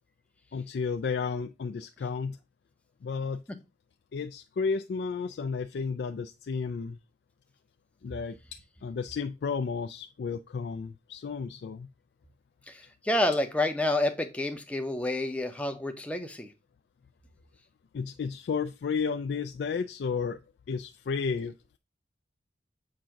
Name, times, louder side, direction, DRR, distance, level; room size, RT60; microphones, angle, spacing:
voice 1, 0.5-2.4 3.0-3.4 4.1-7.0 8.0-11.9 17.9-20.4 20.7-21.8, left 5 dB, 60° left, 8 dB, 0.3 m, -32 dB
voice 2, 12.7-16.5, left 1 dB, 5° left, 6 dB, 0.6 m, -29 dB
7.5 x 2.6 x 5.7 m, 0.27 s
head